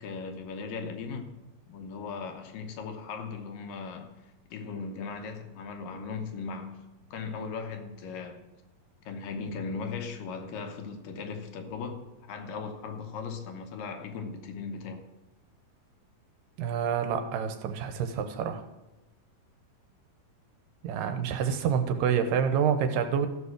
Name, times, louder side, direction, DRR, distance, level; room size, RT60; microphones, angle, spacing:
voice 1, 0.0-1.4 1.7-4.2 4.5-6.8 7.1-8.4 9.1-15.0, left 5 dB, 75° left, 2.7 m, -38 dB
voice 2, 16.6-18.6 20.8-23.3, right 7 dB, 80° right, 2.4 m, -27 dB
14.5 x 5.5 x 6.5 m
omnidirectional pair, 4.0 m